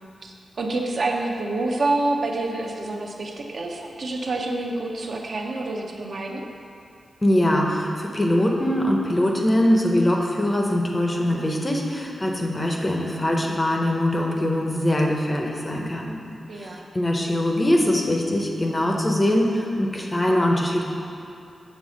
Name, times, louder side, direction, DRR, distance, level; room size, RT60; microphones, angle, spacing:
voice 1, 0.2-6.5 16.5-16.8, right 2 dB, 45° right, 1 dB, 0.6 m, -27 dB
voice 2, 7.2-16.2 16.6-20.8, left 1 dB, 15° left, 0 dB, 0.6 m, -22 dB
7.2 x 4.1 x 6.2 m, 2.6 s
wide cardioid pair, 175°, 0 cm